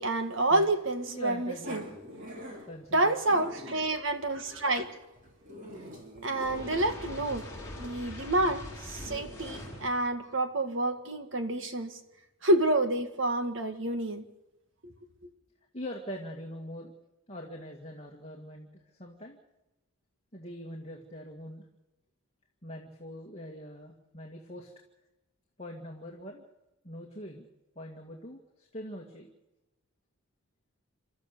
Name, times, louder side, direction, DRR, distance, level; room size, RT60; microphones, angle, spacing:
voice 1, 0.0-1.9 2.9-4.9 6.2-7.5 7.8-11.9 12.4-14.2 14.8-14.9, right 1 dB, 55° right, 8 dB, 1.9 m, -28 dB
voice 2, 1.1-2.0 2.7-3.2 15.7-16.9 17.3-19.4 20.3-21.7 22.6-24.7 25.6-26.4 26.8-27.5 27.8-29.3, equal, 30° left, -1 dB, 2.2 m, -43 dB
Growling, 1.6-9.3, equal, 35° right, 3.3 m, -47 dB
Fire, 6.3-10.0, left 1 dB, 15° left, 6.4 m, -42 dB
29.5 x 13.0 x 6.8 m, 0.98 s
head